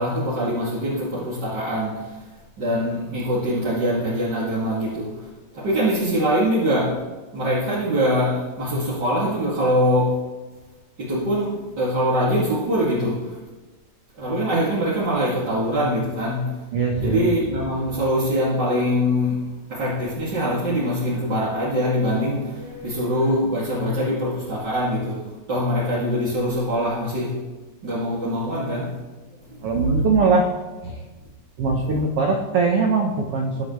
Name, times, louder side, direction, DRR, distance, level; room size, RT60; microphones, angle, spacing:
voice 1, 0.0-2.2 2.6-7.0 7.3-10.2 11.0-13.4 14.2-16.6 17.0-19.4 19.7-25.2 25.5-27.4 27.8-28.9 29.5-29.7 31.8-31.9, equal, 30° right, -9 dB, 2.5 m, -23 dB
voice 2, 16.7-17.3 29.6-30.5 30.8-31.0 31.6-33.6, right 3 dB, 75° right, 2 dB, 1.3 m, -21 dB
21.5 x 7.9 x 3.2 m, 1.2 s
omnidirectional pair, 4.2 m